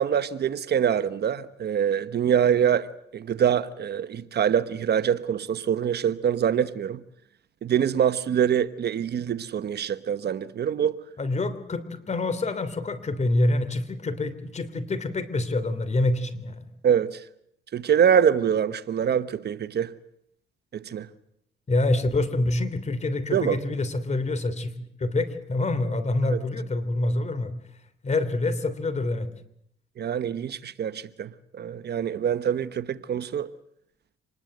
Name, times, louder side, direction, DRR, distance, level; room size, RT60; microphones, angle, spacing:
voice 1, 0.0-2.9 3.1-7.0 7.6-10.9 16.8-17.2 17.7-19.9 20.7-21.1 23.3-23.6 26.3-26.4 30.0-33.5, right 8 dB, 55° right, 1.1 m, -24 dB
voice 2, 11.2-16.7 21.7-24.7 25.0-27.5 28.0-29.3, left 2 dB, 35° left, 3.1 m, -26 dB
26.0 x 20.0 x 7.9 m
cardioid pair, 90°, 20 cm